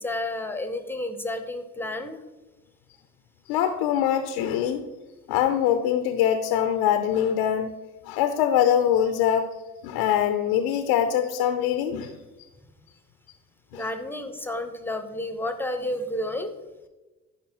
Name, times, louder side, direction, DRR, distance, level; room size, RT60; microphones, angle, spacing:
voice 1, 0.0-2.2 13.7-16.5, left 1 dB, 5° left, 7 dB, 0.9 m, -31 dB
voice 2, 3.5-4.8 5.3-7.7 8.1-9.5 9.8-12.1 13.7-13.8, left 9 dB, 60° left, 8 dB, 0.7 m, -23 dB
13.5 x 5.4 x 3.0 m, 1.1 s
figure-of-eight pair, 50°, 44 cm